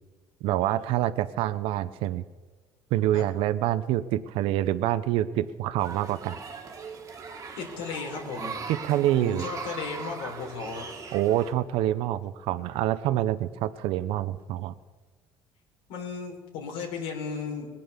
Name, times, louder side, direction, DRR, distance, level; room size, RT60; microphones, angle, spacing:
voice 1, 0.4-2.2 2.9-6.4 8.7-9.4 11.1-14.7, right 13 dB, 75° right, 14 dB, 0.6 m, -26 dB
sound 1, 5.8-11.5, right 5 dB, 35° right, 1.8 m, -40 dB
voice 2, 7.6-8.6 9.2-10.9 15.9-17.7, left 5 dB, 85° left, 0 dB, 3.9 m, -35 dB
20.0 x 8.6 x 7.1 m, 1.4 s
cardioid pair, 125°, 10 cm